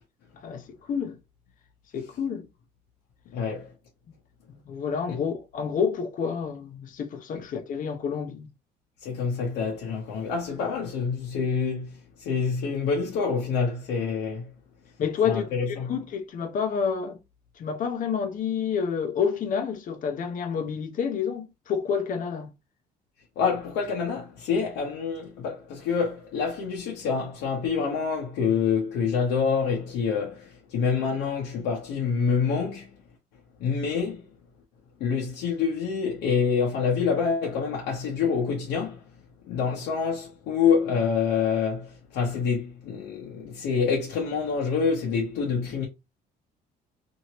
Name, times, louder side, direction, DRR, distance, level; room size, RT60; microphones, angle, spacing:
voice 1, 0.3-1.2 1.9-2.5 4.5-8.5 15.0-17.2 17.6-22.5, left 6 dB, 50° left, 0.8 m, -29 dB
voice 2, 3.3-3.7 5.1-5.2 9.0-11.9 12.2-14.5 15.2-15.9 23.4-32.9 33.6-34.2 35.0-39.0 39.5-45.9, left 6 dB, 85° left, 0.9 m, -27 dB
3.0 x 2.7 x 2.9 m
cardioid pair, 110°, 17 cm